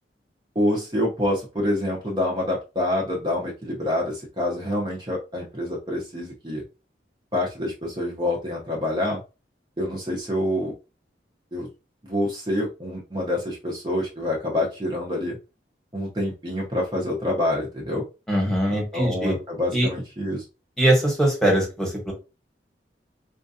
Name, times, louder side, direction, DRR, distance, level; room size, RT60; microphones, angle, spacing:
voice 1, 0.5-6.6 7.3-9.2 9.8-10.7 11.5-11.7 12.0-15.4 15.9-18.0 18.7-20.4, left 1 dB, 25° right, -3 dB, 0.8 m, -27 dB
voice 2, 18.3-19.4 19.7-19.9 20.8-22.1, right 1 dB, 5° left, -2 dB, 1.2 m, -21 dB
4.4 x 2.4 x 2.7 m, 0.29 s
head